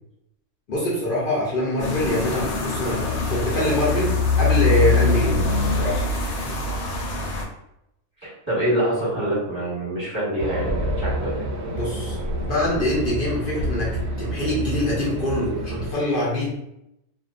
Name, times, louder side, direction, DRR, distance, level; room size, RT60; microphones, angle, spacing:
voice 1, 0.7-5.4 5.7-6.0 6.4-6.5 11.7-16.5, left 1 dB, 50° left, -6 dB, 0.7 m, -24 dB
sound 1, 1.8-7.4, left 4 dB, 90° left, 1.1 m, -23 dB
voice 2, 8.2-11.3, right 1 dB, 20° right, -10 dB, 1.2 m, -25 dB
Race car auto racing, 10.4-15.9, right 1 dB, 65° right, 0.7 m, -28 dB
2.5 x 2.2 x 2.4 m, 0.84 s
omnidirectional pair, 1.5 m